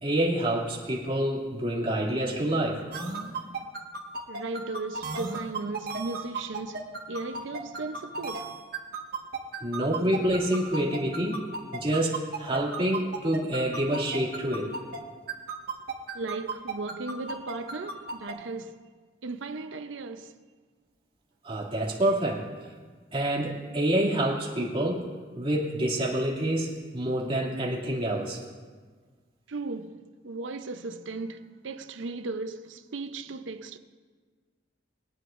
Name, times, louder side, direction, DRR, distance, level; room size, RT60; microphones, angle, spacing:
voice 1, 0.0-2.8 9.6-11.4 11.7-14.7 21.4-22.5 23.1-25.1 25.3-28.4, right 1 dB, 30° right, 2.5 m, -27 dB
sound 1, 2.9-15.0 15.3-18.3, right 4 dB, 55° right, 1.5 m, -34 dB
voice 2, 4.3-8.5 16.1-18.8 19.2-20.3 29.5-33.8, right 3 dB, 85° right, 0.6 m, -36 dB
22.5 x 9.5 x 2.5 m
head